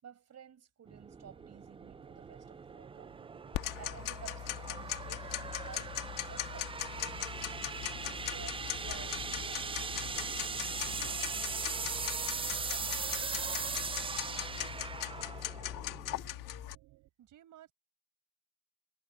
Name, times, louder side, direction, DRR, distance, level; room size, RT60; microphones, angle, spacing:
voice 1, 0.0-3.1 3.8-7.4 8.0-13.5, right 8 dB, 55° right, 5.4 m, -54 dB
sound 1, 0.9-16.3, right 5 dB, 15° right, 0.4 m, -40 dB
sound 2, 1.2-17.1, right 19 dB, 90° right, 3.9 m, -59 dB
Tick-tock, 3.5-16.7, left 15 dB, 80° left, 1.4 m, -40 dB
voice 2, 16.1-16.8 17.2-17.7, right 12 dB, 70° right, 5.4 m, -59 dB
supercardioid pair, 75°, 32 cm